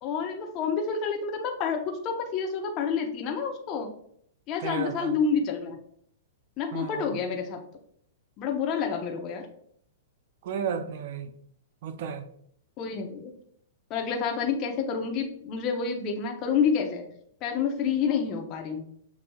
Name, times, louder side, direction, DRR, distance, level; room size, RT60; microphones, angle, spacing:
voice 1, 0.0-3.9 4.5-5.8 6.6-7.6 8.4-9.5 12.8-13.3 13.9-17.0 17.4-18.8, left 6 dB, 40° left, 0.8 m, -28 dB
voice 2, 4.6-5.2 6.7-7.2 10.4-11.3 11.8-12.2, right 7 dB, 60° right, 0.5 m, -33 dB
7.0 x 2.6 x 2.3 m
hypercardioid pair, 120°, 0 cm